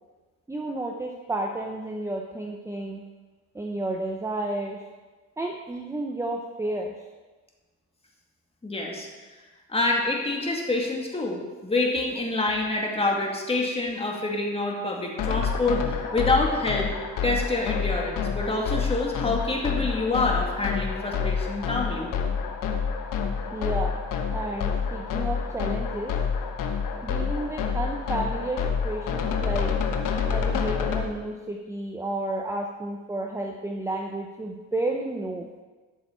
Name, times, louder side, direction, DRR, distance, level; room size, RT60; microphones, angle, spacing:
voice 1, 0.5-3.0 3.5-4.8 5.4-6.9 16.1-16.2 17.1-17.2 23.5-24.0 24.3-26.1 27.0-29.7 30.3-35.5, right 2 dB, 10° right, 1 dB, 0.8 m, -31 dB
voice 2, 8.6-9.1 9.7-16.9 17.2-22.1, left 2 dB, 20° left, 0 dB, 2.0 m, -27 dB
sound 1, 15.2-31.0, left 6 dB, 75° left, 1.1 m, -28 dB
13.0 x 6.5 x 4.5 m, 1.3 s
cardioid pair, 110°, 32 cm